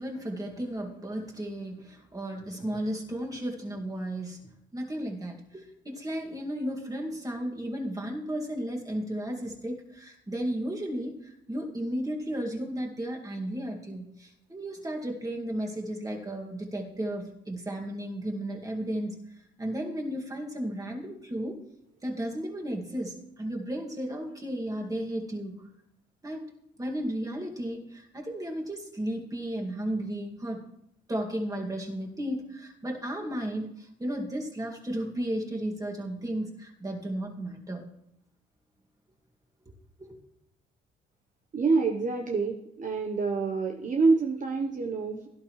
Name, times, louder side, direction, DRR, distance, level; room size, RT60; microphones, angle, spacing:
voice 1, 0.0-4.4 4.7-19.1 19.6-21.6 22.0-25.7 26.2-26.5 26.8-30.7 31.1-37.9 40.0-40.2, right 1 dB, 15° right, 0 dB, 2.2 m, -34 dB
voice 2, 41.5-45.3, right 4 dB, 40° right, 2 dB, 1.0 m, -27 dB
17.0 x 11.5 x 3.2 m, 0.79 s
cardioid pair, 90°, 20 cm